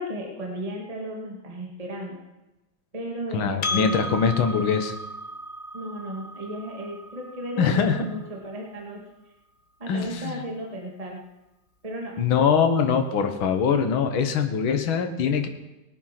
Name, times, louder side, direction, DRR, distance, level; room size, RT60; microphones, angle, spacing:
voice 1, 0.0-2.2 2.9-4.3 5.7-9.0 9.8-11.2 11.8-12.2, equal, 20° right, -1 dB, 2.1 m, -35 dB
voice 2, 3.3-5.0 7.6-8.0 9.9-10.4 12.2-15.5, left 6 dB, 75° left, 6 dB, 2.0 m, -23 dB
Percussion, 3.6-8.4, left 1 dB, 40° left, 0.7 m, -35 dB
19.5 x 9.2 x 6.0 m, 1.0 s
omnidirectional pair, 2.3 m